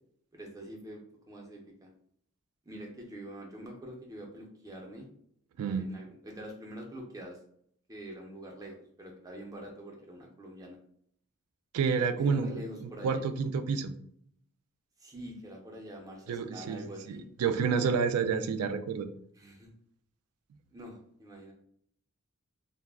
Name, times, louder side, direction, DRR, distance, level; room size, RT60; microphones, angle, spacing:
voice 1, 0.3-1.0 1.3-1.9 2.6-5.1 5.8-7.4 7.9-10.8 12.2-13.2 15.0-17.3 19.3-19.7 20.7-21.5, equal, 15° right, 0 dB, 0.5 m, -45 dB
voice 2, 11.7-13.9 16.3-16.8 17.1-19.1, right 5 dB, 85° right, 10 dB, 0.3 m, -29 dB
2.2 x 2.0 x 3.4 m, 0.67 s
head